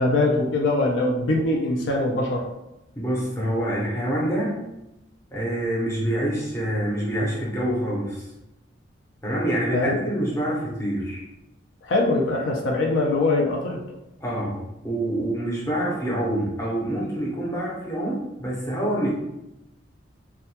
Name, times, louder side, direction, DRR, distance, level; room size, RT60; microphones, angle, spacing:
voice 1, 0.0-2.4 9.7-10.0 11.8-13.8, left 2 dB, 75° left, 0 dB, 0.4 m, -22 dB
voice 2, 3.0-4.6 5.3-8.3 9.2-11.2 14.2-19.1, right 1 dB, 15° left, -5 dB, 0.6 m, -26 dB
2.2 x 2.2 x 2.8 m, 0.93 s
head